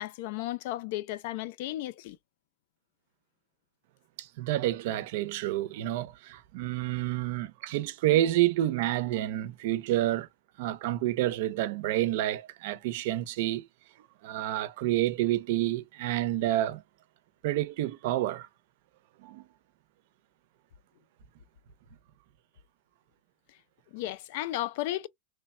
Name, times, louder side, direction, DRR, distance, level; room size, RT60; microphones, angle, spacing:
voice 1, 0.0-2.2 23.9-25.1, left 15 dB, 55° left, 0.4 m, -34 dB
voice 2, 4.2-10.3 10.6-13.7 14.2-16.8 17.4-18.5 19.2-19.4, right 14 dB, 55° right, 0.5 m, -29 dB
3.2 x 2.2 x 4.2 m
supercardioid pair, 165°, 0 cm